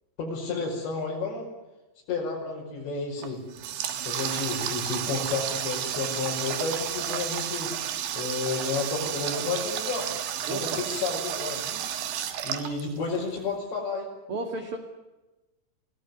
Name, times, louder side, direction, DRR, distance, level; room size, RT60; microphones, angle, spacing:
voice 1, 0.2-1.5 2.1-3.4 4.0-7.7 8.1-10.1 10.5-11.8 12.4-14.1, left 4 dB, 70° left, -4 dB, 7.7 m, -31 dB
Water tap faucet, 3.2-13.4, right 10 dB, 70° right, 3.6 m, -32 dB
voice 2, 10.4-10.8 14.3-14.8, right 2 dB, 35° right, 3 dB, 2.7 m, -33 dB
29.0 x 18.0 x 9.7 m, 1.1 s
omnidirectional pair, 5.2 m